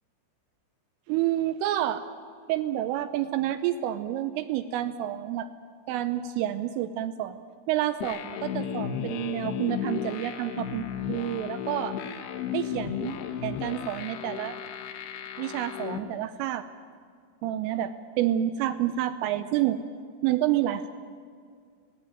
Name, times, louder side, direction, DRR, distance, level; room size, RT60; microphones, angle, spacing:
voice 1, 1.1-2.0 2.5-5.5 5.9-7.4 7.7-12.0 12.5-13.1 13.4-14.6 15.4-16.7 17.4-19.8 20.2-20.9, right 12 dB, 80° right, 11 dB, 3.2 m, -29 dB
sound 1, 8.0-16.0, left 9 dB, 65° left, 3.0 m, -34 dB
23.5 x 19.0 x 9.0 m, 2.2 s
omnidirectional pair, 5.9 m